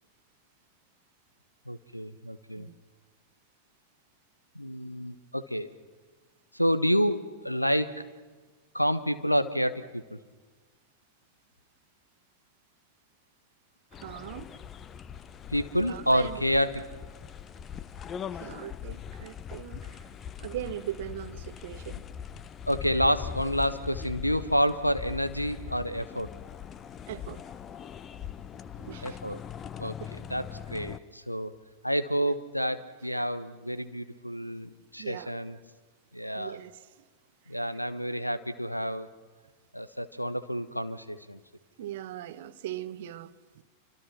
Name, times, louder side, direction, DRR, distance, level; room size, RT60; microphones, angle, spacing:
voice 1, 1.7-2.7 4.5-5.7 6.5-8.0 8.7-10.2 15.5-16.9 22.7-26.3 29.0-29.4 29.8-29.9 30.3-31.5 31.8-35.6 36.1-36.6 37.5-39.1 39.7-41.4, equal, 90° left, 1.1 m, -29 dB
sound 1, 13.9-31.0, left 8 dB, 25° left, 0.8 m, -41 dB
voice 2, 13.9-14.5 15.9-16.6 18.3-20.1 20.4-22.1 24.0-24.1 27.1-27.4 28.8-29.2 35.0-35.3 36.3-37.0 37.5-37.8 41.8-43.6, right 12 dB, 55° right, 1.0 m, -40 dB
28.5 x 25.0 x 5.9 m
figure-of-eight pair, 90°, 0 cm